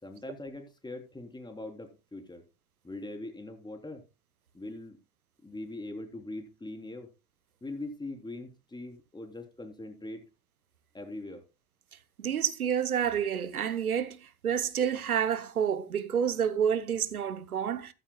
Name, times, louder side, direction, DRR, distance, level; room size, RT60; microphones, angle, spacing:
voice 1, 0.0-2.4 2.8-4.0 4.5-5.0 5.4-7.1 7.6-10.3 10.9-11.4, left 2 dB, 10° left, 3.7 m, -41 dB
voice 2, 12.2-17.9, right 8 dB, 80° right, 1.1 m, -29 dB
14.5 x 13.0 x 2.3 m
figure-of-eight pair, 75°, 43 cm